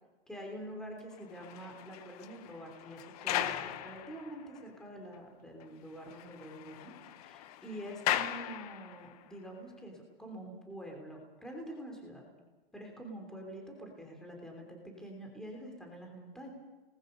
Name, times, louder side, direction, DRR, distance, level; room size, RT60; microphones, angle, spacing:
voice 1, 0.3-12.2 12.7-16.5, right 1 dB, ahead, 1 dB, 3.2 m, -46 dB
sound 1, 1.1-4.6 5.1-5.2 5.6-5.7 6.0-9.2, left 12 dB, 40° left, 0.8 m, -38 dB
27.0 x 20.0 x 5.4 m, 1.2 s
hypercardioid pair, 155°, 30 cm